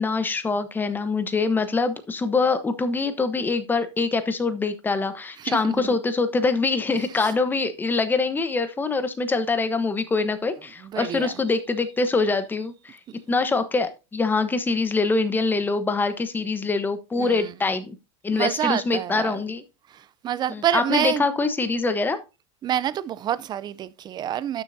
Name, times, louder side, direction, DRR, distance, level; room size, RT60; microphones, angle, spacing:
voice 1, 0.0-13.0 13.3-18.0 18.2-19.6 20.5-22.2, left 3 dB, 10° left, 1.0 m, -24 dB
voice 2, 5.4-5.9 7.2-7.3 10.8-11.3 17.2-17.5 18.3-19.4 19.9-21.3 22.6-24.6, right 10 dB, 25° right, 0.5 m, -27 dB
12.0 x 6.8 x 2.7 m
supercardioid pair, 130°, 16 cm